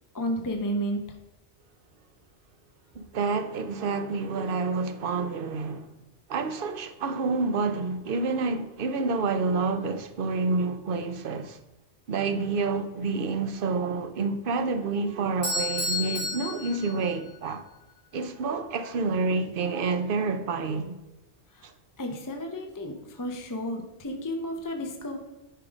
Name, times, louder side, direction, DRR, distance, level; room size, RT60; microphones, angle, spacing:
voice 1, 0.1-1.0 21.6-21.7 22.0-25.2, equal, 20° left, 0.7 m, -32 dB
voice 2, 3.0-5.9 6.3-11.6 12.1-17.6 18.1-21.0, right 4 dB, 55° right, 0.8 m, -28 dB
Bell / Doorbell, 15.4-17.5, left 2 dB, 35° left, 2.7 m, -31 dB
10.0 x 3.7 x 5.0 m
omnidirectional pair, 1.2 m